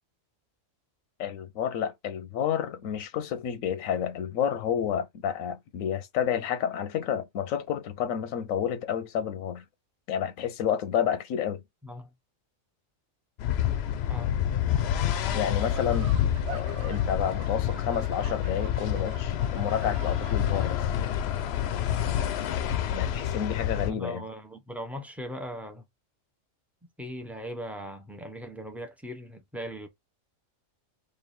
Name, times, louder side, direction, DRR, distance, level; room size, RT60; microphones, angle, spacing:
voice 1, 1.2-9.6 10.1-11.6 15.3-16.1 16.5-20.9 22.9-24.2, left 9 dB, 90° left, 1.0 m, -30 dB
voice 2, 11.8-12.1 14.1-14.3 23.8-25.8 27.0-29.9, equal, ahead, 0.4 m, -39 dB
sound 1, 13.4-23.9, left 10 dB, 65° left, 0.7 m, -28 dB
sound 2, 15.6-20.7, right 8 dB, 65° right, 0.9 m, -45 dB
3.2 x 2.7 x 4.2 m
omnidirectional pair, 1.3 m